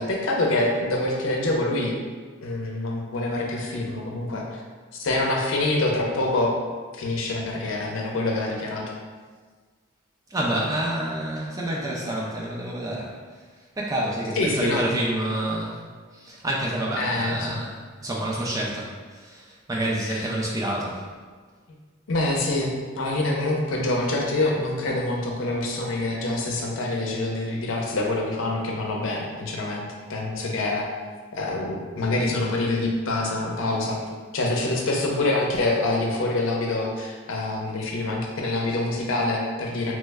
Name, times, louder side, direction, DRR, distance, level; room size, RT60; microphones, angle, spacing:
voice 1, 0.0-2.0 2.4-4.6 4.9-6.5 6.9-8.8 14.3-14.9 17.0-17.6 20.0-20.3 22.1-30.9 31.3-34.0 34.3-40.0, left 2 dB, 70° left, -1 dB, 0.5 m, -26 dB
voice 2, 10.3-13.2 13.8-15.8 16.1-21.0, right 1 dB, 15° right, -3 dB, 0.3 m, -28 dB
3.1 x 2.1 x 3.4 m, 1.5 s
head